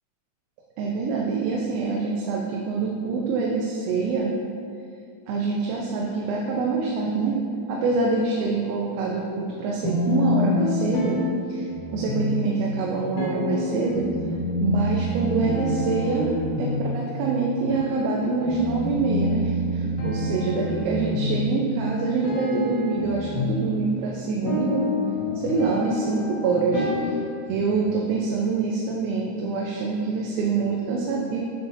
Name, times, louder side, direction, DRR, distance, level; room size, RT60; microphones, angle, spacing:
voice 1, 0.8-4.3 5.3-7.4 7.7-11.2 11.5-11.7 11.9-14.1 14.6-24.9 25.4-27.2 27.5-31.4, right 4 dB, 85° right, -2 dB, 2.5 m, -25 dB
sound 1, 9.8-27.8, left 2 dB, 80° left, 3.0 m, -28 dB
7.7 x 7.1 x 2.6 m, 2.4 s
omnidirectional pair, 4.2 m